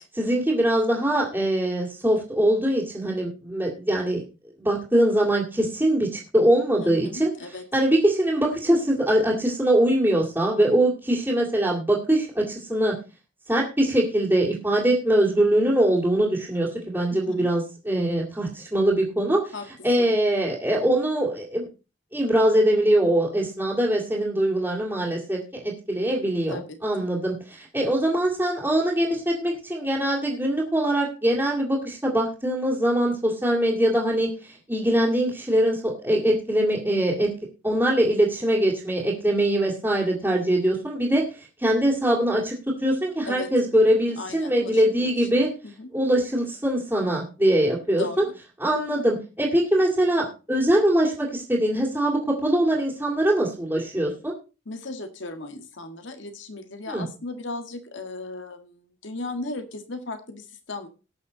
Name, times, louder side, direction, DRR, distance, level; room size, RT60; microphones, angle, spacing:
voice 1, 0.2-4.2 4.6-7.3 7.7-12.9 13.5-19.5 19.8-21.7 22.1-37.3 37.6-42.5 42.8-45.5 45.9-48.2 48.6-54.3 56.9-57.0, right 1 dB, 10° right, -7 dB, 2.4 m, -22 dB
voice 2, 6.8-7.6 17.1-17.5 19.5-19.7 20.0-20.1 26.5-27.1 43.2-43.5 44.2-45.9 48.0-48.4 54.6-60.9, left 3 dB, 80° left, 7 dB, 1.8 m, -36 dB
19.0 x 6.5 x 4.0 m, 0.31 s
head